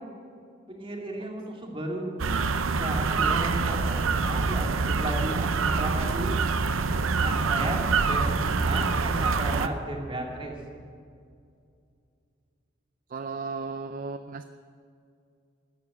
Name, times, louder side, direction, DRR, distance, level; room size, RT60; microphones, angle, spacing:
voice 1, 0.7-2.1 2.6-5.5 5.8-6.4 7.2-10.5, right 1 dB, 25° right, 0 dB, 2.5 m, -34 dB
sound 1, 2.2-9.7, right 4 dB, 90° right, 0.7 m, -25 dB
voice 2, 13.1-14.4, right 4 dB, 45° right, 9 dB, 0.5 m, -35 dB
13.5 x 11.5 x 8.7 m, 2.3 s
head